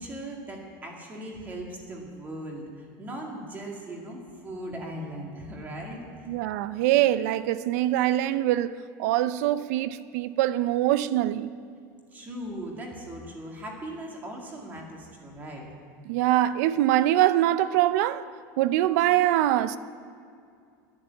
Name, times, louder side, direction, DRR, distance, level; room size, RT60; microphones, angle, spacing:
voice 1, 0.0-6.3 12.1-15.7, right 1 dB, 20° right, 2.2 m, -39 dB
voice 2, 6.3-11.5 16.1-18.3 18.6-19.8, right 13 dB, 75° right, 0.5 m, -23 dB
10.5 x 10.5 x 8.4 m
cardioid pair, 165°, 9 cm